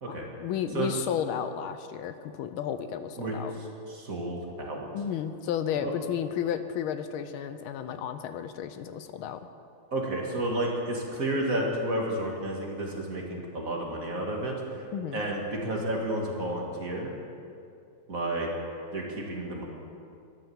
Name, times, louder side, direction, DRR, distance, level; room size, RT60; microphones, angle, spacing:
voice 1, 0.1-3.5 4.9-9.4 14.9-15.2, left 9 dB, 80° left, 10 dB, 1.4 m, -33 dB
voice 2, 3.9-4.9 5.8-5.9 9.9-14.5 15.1-17.1 18.1-18.5 18.9-19.6, right 1 dB, 40° right, -1 dB, 2.3 m, -31 dB
12.5 x 11.5 x 7.1 m, 2.5 s
omnidirectional pair, 2.4 m